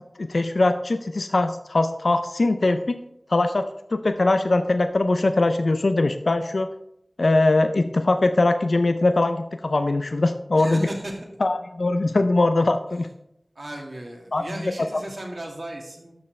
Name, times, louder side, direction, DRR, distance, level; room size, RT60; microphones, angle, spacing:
voice 1, 0.2-3.0 3.3-3.6 3.9-6.7 7.2-10.8 11.4-13.1 14.3-14.4 14.9-15.0, left 2 dB, 80° left, 8 dB, 0.5 m, -21 dB
voice 2, 10.5-11.3 13.6-16.2, right 1 dB, 60° right, 0 dB, 2.1 m, -35 dB
12.5 x 6.8 x 3.3 m, 0.80 s
wide cardioid pair, 55°, 0 cm